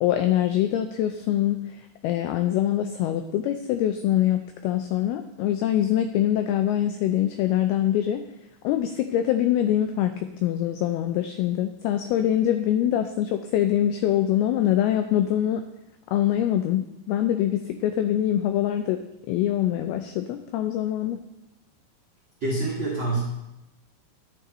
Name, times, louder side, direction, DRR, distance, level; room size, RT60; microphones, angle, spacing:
voice 1, 0.0-1.8 2.0-8.2 8.6-10.2 10.4-15.6 16.1-19.0 19.3-21.2, left 11 dB, 90° left, 8 dB, 2.2 m, -24 dB
voice 2, 22.4-23.2, right 2 dB, 75° right, -5 dB, 1.1 m, -26 dB
11.0 x 8.2 x 3.0 m, 0.90 s
omnidirectional pair, 5.0 m